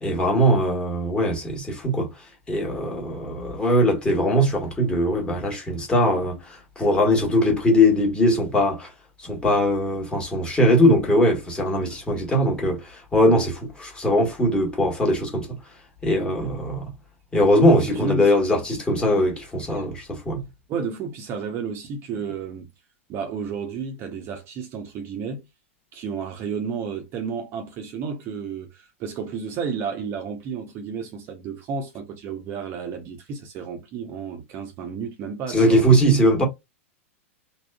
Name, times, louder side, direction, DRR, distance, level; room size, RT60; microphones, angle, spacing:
voice 1, 0.0-8.9 9.2-15.6 16.0-16.9 17.3-20.4 35.5-36.4, equal, 10° left, 1.3 m, -21 dB
voice 2, 18.0-18.3 19.7-19.8 20.7-22.7 23.1-25.5 25.9-35.8, right 5 dB, 35° right, 0.6 m, -32 dB
3.5 x 2.1 x 2.3 m
figure-of-eight pair, 95°, 7 cm